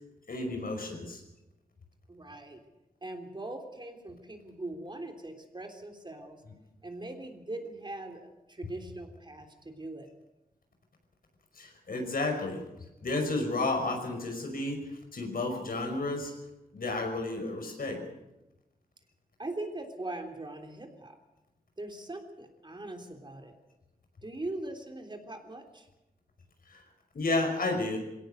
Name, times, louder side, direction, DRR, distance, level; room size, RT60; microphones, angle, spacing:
voice 1, 0.3-1.2 11.6-12.6 13.0-14.8 15.1-16.3 16.7-18.0 26.7-26.8 27.1-28.0, left 2 dB, 75° left, 4 dB, 5.6 m, -31 dB
voice 2, 2.1-2.6 3.0-6.4 6.8-10.1 19.4-21.2 21.8-23.5 24.2-25.9, right 2 dB, 30° right, 4 dB, 3.4 m, -41 dB
22.0 x 17.5 x 7.9 m, 0.95 s
wide cardioid pair, 85°, 15 cm